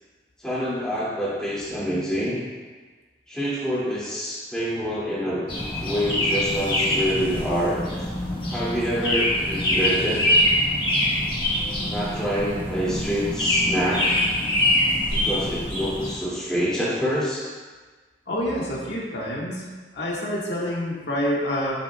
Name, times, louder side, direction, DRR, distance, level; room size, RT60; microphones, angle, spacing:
voice 1, 0.4-2.4 3.3-5.4 5.8-7.8 8.5-10.2 11.8-14.1 15.1-17.5, equal, 5° left, -9 dB, 2.3 m, -26 dB
sound 1, 5.5-16.1, left 1 dB, 30° left, 1.5 m, -24 dB
voice 2, 18.3-19.6 19.9-21.8, equal, 80° left, -5 dB, 1.7 m, -27 dB
11.5 x 6.5 x 2.3 m, 1.4 s
head